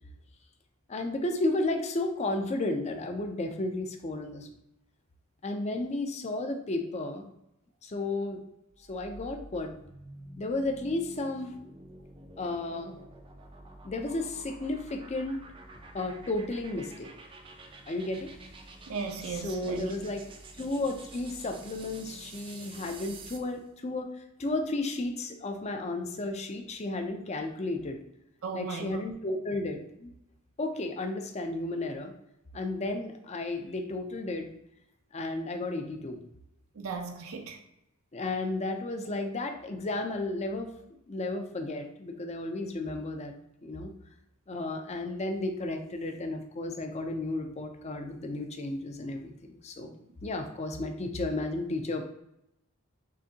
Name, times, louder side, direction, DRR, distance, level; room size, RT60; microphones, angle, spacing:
voice 1, 0.9-4.5 5.4-7.3 7.8-8.4 8.9-9.7 10.4-11.5 12.4-12.9 13.8-15.4 15.9-17.1 17.9-18.3 19.3-20.3 20.6-28.0 28.5-30.1 30.6-32.1 32.5-34.5 35.1-36.2 38.1-40.7 41.1-43.3 43.6-43.9 44.5-52.0, left 2 dB, 30° left, 0.5 m, -33 dB
sound 1, 8.8-23.5, right 2 dB, 25° right, 0.4 m, -49 dB
voice 2, 18.9-19.9 28.4-29.0 36.7-37.6, right 5 dB, 80° right, 0.6 m, -36 dB
6.1 x 2.6 x 2.8 m
head